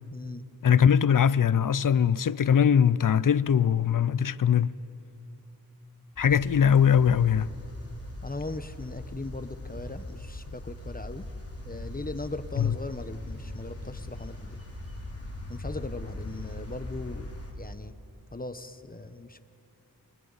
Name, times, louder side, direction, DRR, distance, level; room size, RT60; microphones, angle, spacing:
voice 1, 0.1-0.4 8.2-11.3 11.7-14.6 15.5-17.9 18.3-19.4, left 2 dB, 25° left, 1.0 m, -39 dB
voice 2, 0.6-4.7 6.2-7.5 12.6-12.7, left 8 dB, 60° left, 0.5 m, -21 dB
sound 1, 6.2-17.5, left 1 dB, 40° left, 3.3 m, -40 dB
29.5 x 23.5 x 4.1 m
wide cardioid pair, 50°, 38 cm